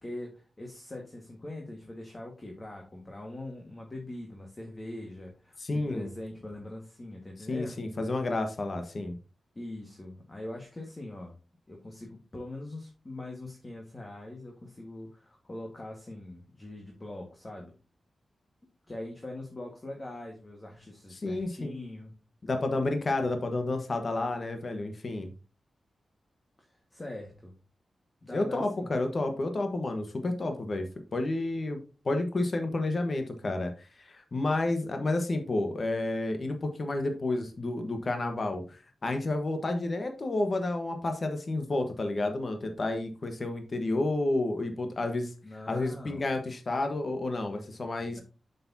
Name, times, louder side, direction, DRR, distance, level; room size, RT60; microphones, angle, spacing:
voice 1, 0.0-7.8 9.5-11.3 11.7-17.7 18.9-22.1 26.6-27.5 28.2-28.9 45.4-46.3 48.1-48.2, left 1 dB, 25° left, 1 dB, 1.7 m, -42 dB
voice 2, 5.6-6.1 7.5-9.1 21.1-21.7 22.4-25.3 28.3-30.9 31.1-45.3 45.7-48.2, left 2 dB, 45° left, 6 dB, 1.3 m, -30 dB
7.6 x 6.9 x 2.8 m, 0.33 s
wide cardioid pair, 110°, 0 cm